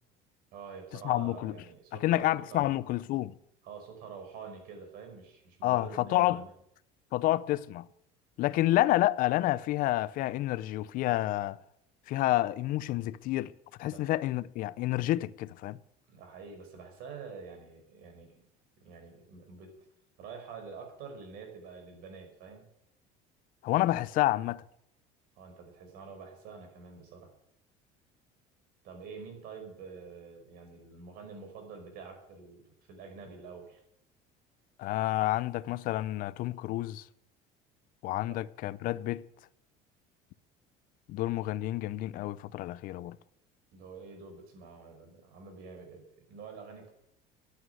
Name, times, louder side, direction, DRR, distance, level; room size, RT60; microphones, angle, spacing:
voice 1, 0.5-2.7 3.6-6.4 13.8-14.1 16.1-18.4 18.8-19.8 20.2-22.7 25.4-27.3 28.8-33.8 38.3-38.4 43.7-46.9, right 5 dB, 65° right, 5.3 m, -47 dB
voice 2, 1.0-1.5 2.0-3.3 5.6-6.5 7.1-7.9 8.4-11.6 12.1-13.5 13.8-15.8 23.6-24.6 34.8-37.0 38.0-39.2 41.1-43.2, left 16 dB, 60° left, 0.6 m, -29 dB
11.5 x 9.4 x 9.3 m
cardioid pair, 140°, 17 cm